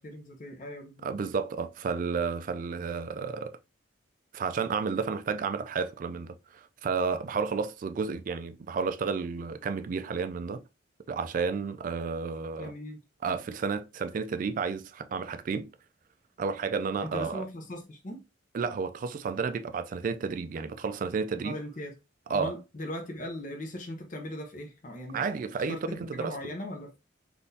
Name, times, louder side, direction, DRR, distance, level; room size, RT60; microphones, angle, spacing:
voice 1, 0.0-1.1 12.6-13.0 17.0-18.2 21.3-21.9 22.3-25.3 25.7-27.1, left 1 dB, 40° left, 0.6 m, -39 dB
voice 2, 1.0-3.6 4.3-10.6 11.1-12.7 13.2-15.7 16.4-17.5 18.5-21.6 22.3-22.6 25.1-26.4, right 5 dB, 45° right, 0.3 m, -31 dB
3.7 x 2.5 x 2.7 m
head